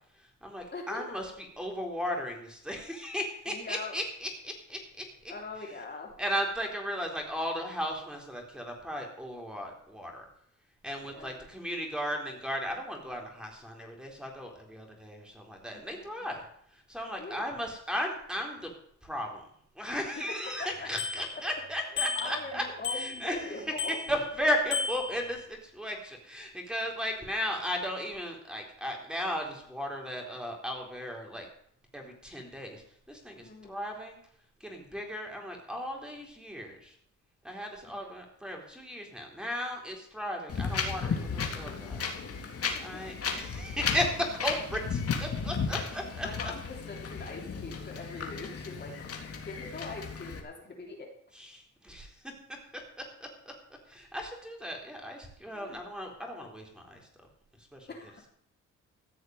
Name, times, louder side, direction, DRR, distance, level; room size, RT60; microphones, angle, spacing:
voice 1, 0.2-5.0 6.2-10.2 10.8-16.4 16.7-18.7 19.0-19.4 19.8-22.6 22.9-31.5 31.9-34.2 34.6-36.9 37.4-42.1 42.4-42.5 42.8-46.5 51.3-53.3 53.9-57.1 57.7-57.9, equal, 5° right, 1 dB, 4.1 m, -36 dB
voice 2, 0.7-1.2 3.5-3.9 5.3-6.1 11.0-11.4 15.7-16.3 17.2-17.5 20.2-20.9 21.3-21.4 22.1-24.0 33.4-33.8 37.9-38.1 42.7-43.0 45.7-45.9 46.2-51.1 55.5-55.8 57.9-58.3, left 3 dB, 35° left, 1 dB, 3.3 m, -42 dB
Bicycle bell, 20.4-20.5 21.0-21.6 22.0-22.4 22.8-23.4 23.8-24.3 24.7-25.4, left 4 dB, 65° left, 5.1 m, -34 dB
Wind, 40.5-50.4, left 5 dB, 50° left, 3.0 m, -34 dB
15.0 x 6.4 x 9.6 m, 0.68 s
cardioid pair, 90°, 30 cm